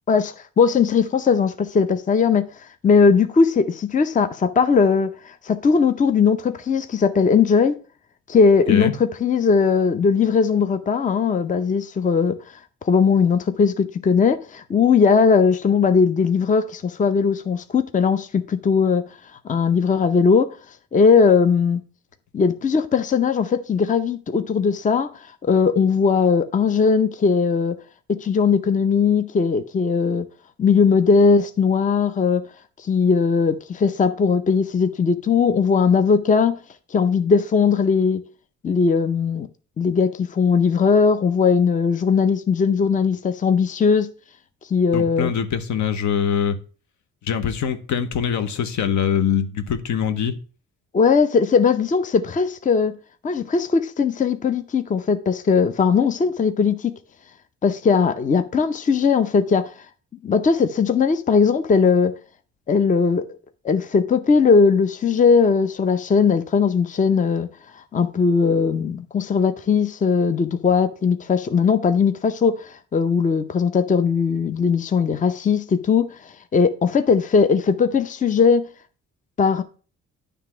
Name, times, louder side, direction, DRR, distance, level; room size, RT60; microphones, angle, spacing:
voice 1, 0.1-2.5 2.8-7.8 8.3-12.4 12.8-19.0 19.4-20.6 20.9-21.8 22.3-25.1 25.4-27.8 28.1-30.3 30.6-32.4 32.8-36.6 36.9-38.2 38.6-39.5 39.8-44.1 44.7-45.3 50.9-52.9 53.2-56.9 57.6-59.7 60.2-62.1 62.7-63.3 63.6-67.5 67.9-78.6 79.4-79.6, left 5 dB, 25° left, 0.6 m, -19 dB
voice 2, 44.9-46.6 47.3-50.3, left 8 dB, 70° left, 0.9 m, -23 dB
9.5 x 3.4 x 6.0 m
cardioid pair, 90°, 30 cm